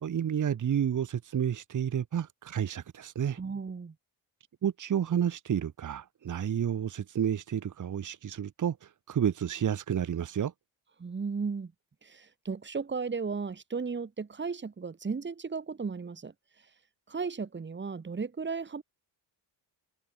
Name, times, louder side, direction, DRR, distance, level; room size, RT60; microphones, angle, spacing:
voice 1, 0.0-3.4 4.6-10.5, right 9 dB, 40° right, 2.1 m, -30 dB
voice 2, 3.4-3.9 11.0-11.7 12.0-16.3 17.1-18.8, right 5 dB, 25° right, 5.0 m, -35 dB
cardioid pair, 155°, 46 cm